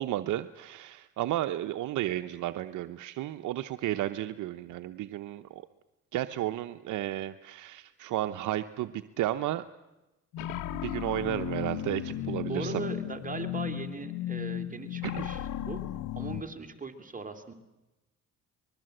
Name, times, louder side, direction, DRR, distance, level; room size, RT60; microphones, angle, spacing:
voice 1, 0.0-5.6 6.1-9.6 10.7-12.8 15.0-15.3, right 14 dB, 80° right, 9 dB, 0.8 m, -33 dB
sound 1, 10.3-16.4, left 11 dB, 90° left, 1.0 m, -35 dB
voice 2, 12.5-15.8 16.1-17.5, right 4 dB, 25° right, 6 dB, 2.6 m, -39 dB
24.0 x 21.5 x 7.8 m, 1.0 s
cardioid pair, 90°, 30 cm